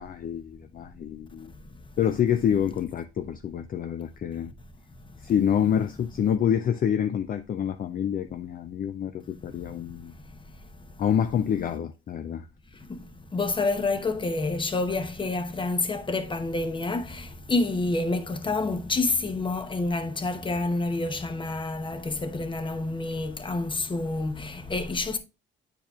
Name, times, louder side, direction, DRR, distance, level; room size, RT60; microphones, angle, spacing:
voice 1, 0.0-1.5 2.0-4.5 5.2-10.1 11.0-12.5, left 9 dB, 45° left, 0.4 m, -27 dB
voice 2, 13.3-25.2, left 3 dB, 25° left, 0.9 m, -28 dB
8.7 x 4.6 x 2.4 m
cardioid pair, 90°, 20 cm